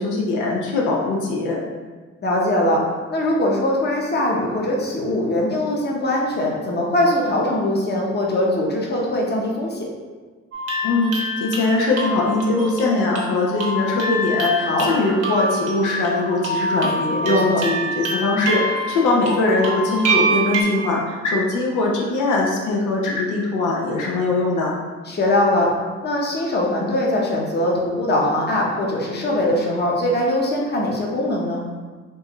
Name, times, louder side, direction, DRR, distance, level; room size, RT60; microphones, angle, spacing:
voice 1, 0.0-1.6 10.8-24.8, left 2 dB, 85° left, -3 dB, 0.8 m, -21 dB
voice 2, 2.2-2.8 3.1-9.9 14.6-14.9 17.2-17.6 25.1-25.7 26.0-31.6, left 1 dB, 35° left, -2 dB, 0.9 m, -21 dB
sound 1, 10.5-20.6, right 1 dB, 55° right, 1.1 m, -26 dB
4.7 x 2.6 x 3.0 m, 1.4 s
cardioid pair, 90°, 30 cm